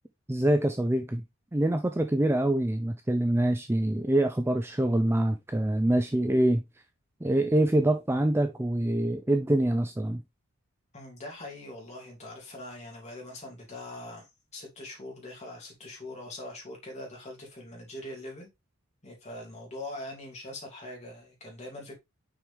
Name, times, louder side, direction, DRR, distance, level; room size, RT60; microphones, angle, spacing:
voice 1, 0.3-1.2 1.5-6.6 7.2-10.2, right 1 dB, 10° right, 0.4 m, -25 dB
voice 2, 10.9-14.3 14.5-18.5 19.0-22.0, left 1 dB, 30° left, 3.0 m, -42 dB
6.2 x 4.9 x 3.4 m
head